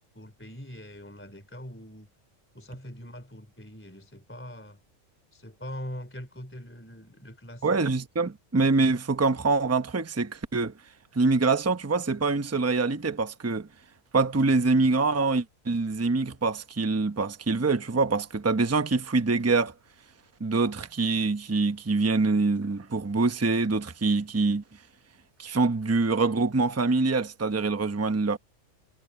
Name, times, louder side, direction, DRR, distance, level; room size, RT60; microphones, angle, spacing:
voice 1, 0.0-2.1 2.5-4.8 5.3-7.7, equal, 10° left, 3.1 m, -42 dB
voice 2, 7.6-10.7 11.1-13.7 14.1-19.7 20.4-24.6 25.4-28.4, right 3 dB, 15° right, 0.7 m, -25 dB
omnidirectional pair, 1.4 m